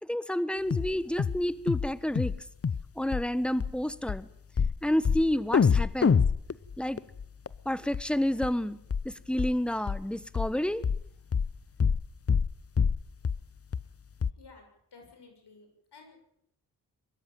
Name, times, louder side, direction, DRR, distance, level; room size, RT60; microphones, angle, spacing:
voice 1, 0.0-2.3 3.0-4.3 4.8-6.2 6.8-7.0 7.6-8.8 9.0-10.8, left 1 dB, ahead, 15 dB, 1.2 m, -29 dB
sound 1, 0.7-0.9 1.2-1.4 1.7-1.9 2.2-2.4 2.6-2.9 3.1-3.2 3.6-3.7 4.1-4.2 4.6-4.8 5.1-5.3 5.5-7.6 7.9-8.0 8.4-8.5 8.9-9.1 9.4-9.5 9.9-10.0 10.4-10.5 10.8-11.0 11.3-11.5 11.8-12.0 12.3-12.5 12.8-13.0 13.3-13.4 13.7-13.8 14.2-14.3, left 6 dB, 35° left, 0.8 m, -26 dB
voice 2, 14.9-16.2, left 4 dB, 75° left, 4 dB, 6.7 m, -53 dB
23.0 x 13.0 x 9.1 m, 0.73 s
cardioid pair, 50°, 41 cm